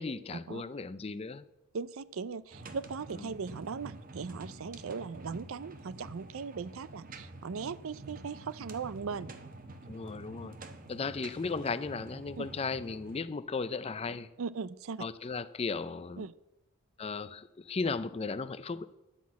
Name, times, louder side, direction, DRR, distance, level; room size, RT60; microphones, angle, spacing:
voice 1, 0.0-1.4 3.3-3.4 9.9-10.6 10.9-14.3 15.0-16.3 17.0-18.9, left 4 dB, 25° left, 0.4 m, -36 dB
voice 2, 1.7-9.3 12.4-12.5 14.4-15.0 16.2-16.3, right 5 dB, 65° right, 0.5 m, -39 dB
sound 1, 2.5-13.2, right 2 dB, 40° right, 1.0 m, -48 dB
11.5 x 6.0 x 8.4 m
head